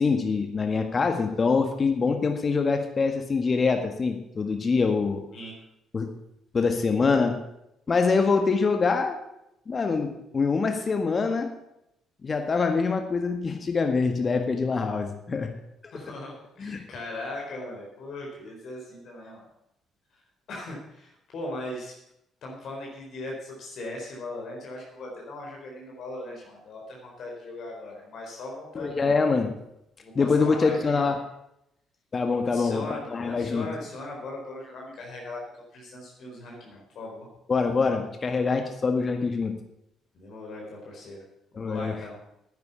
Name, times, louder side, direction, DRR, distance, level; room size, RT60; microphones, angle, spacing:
voice 1, 0.0-5.2 5.9-6.1 6.5-7.3 7.9-9.2 9.7-11.5 12.2-15.5 16.6-16.8 28.8-29.5 30.2-31.1 32.1-32.8 33.1-33.7 37.5-39.5 41.5-41.9, left 4 dB, 40° left, 5 dB, 1.8 m, -24 dB
voice 2, 15.9-19.4 20.5-21.9 22.4-29.2 30.0-31.1 32.5-35.4 35.7-37.3 40.1-41.2 41.5-42.2, left 2 dB, 60° left, -2 dB, 4.2 m, -39 dB
10.0 x 9.5 x 8.2 m, 0.82 s
hypercardioid pair, 50°, 0 cm